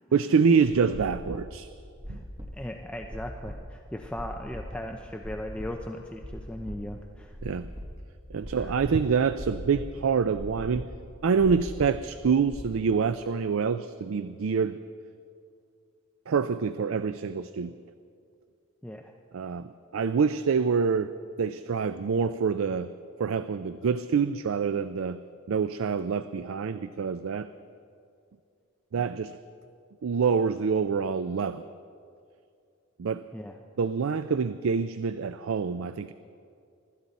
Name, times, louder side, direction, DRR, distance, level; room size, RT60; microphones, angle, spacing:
voice 1, 0.1-1.7 2.1-2.2 7.4-7.7 8.3-10.9 11.2-14.8 16.3-17.7 19.3-21.1 21.4-22.9 23.2-25.2 25.5-27.5 28.9-29.3 30.0-31.6 33.0-33.3 33.8-36.1, right 5 dB, 70° right, 13 dB, 0.4 m, -26 dB
sound 1, 0.7-12.7, equal, 20° right, 1.4 m, -41 dB
voice 2, 2.1-7.4 8.3-8.8 18.8-19.1 33.3-33.5, left 1 dB, 5° left, 2 dB, 0.6 m, -38 dB
24.5 x 13.0 x 4.1 m, 2.4 s
head